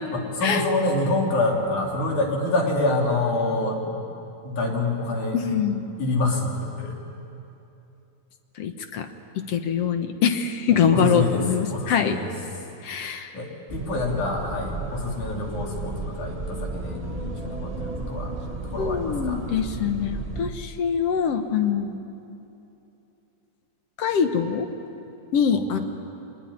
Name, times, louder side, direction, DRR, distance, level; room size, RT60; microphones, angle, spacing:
voice 1, 0.1-4.0 4.4-5.4 6.0-7.0 10.7-12.3 13.3-18.3 18.7-19.4 25.5-25.8, left 2 dB, 80° left, -1 dB, 4.6 m, -26 dB
voice 2, 5.3-5.9 8.6-9.1 9.4-12.2 12.8-13.3 18.8-22.0 24.0-24.7 25.3-25.8, left 7 dB, 60° left, 7 dB, 2.0 m, -24 dB
sound 1, 13.7-20.5, right 3 dB, 30° right, 0.6 m, -33 dB
24.0 x 20.0 x 9.9 m, 2.8 s
omnidirectional pair, 3.5 m